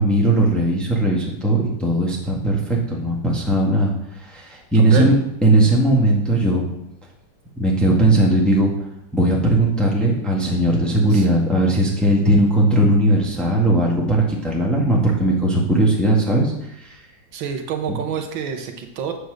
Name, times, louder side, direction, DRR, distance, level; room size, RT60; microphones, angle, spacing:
voice 1, 0.0-3.9 4.2-5.1 5.4-6.6 7.6-8.7 9.1-16.5 16.8-17.0 17.9-18.0, right 1 dB, ahead, -2 dB, 1.4 m, -18 dB
voice 2, 4.7-5.1 11.1-11.3 17.3-19.1, right 7 dB, 75° right, 4 dB, 1.6 m, -27 dB
8.0 x 4.9 x 6.3 m, 0.80 s
omnidirectional pair, 2.2 m